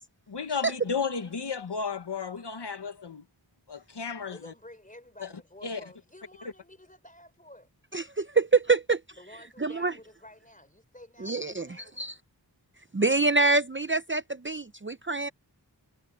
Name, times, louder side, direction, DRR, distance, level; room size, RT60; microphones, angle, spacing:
voice 1, 0.3-3.2 3.7-4.5 5.2-5.3 5.6-5.8, left 5 dB, 75° left, 1.3 m, -33 dB
voice 2, 4.3-7.7 9.2-12.0, left 1 dB, 20° left, 4.3 m, -51 dB
voice 3, 7.9-9.0 9.6-9.9 11.2-12.1 12.9-15.3, right 3 dB, 30° right, 0.7 m, -26 dB
wide cardioid pair, 45°, 41 cm